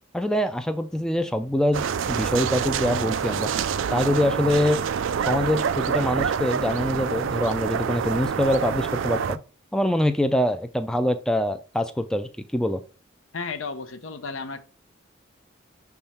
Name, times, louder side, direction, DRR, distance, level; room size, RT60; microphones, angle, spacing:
voice 1, 0.1-3.5 3.9-4.8 5.3-9.4 9.7-12.8, left 1 dB, 5° left, 0.3 m, -24 dB
sound 1, 1.7-9.4, right 7 dB, 70° right, 0.4 m, -26 dB
voice 2, 13.3-14.6, left 4 dB, 80° left, 0.7 m, -33 dB
6.2 x 3.5 x 4.2 m
head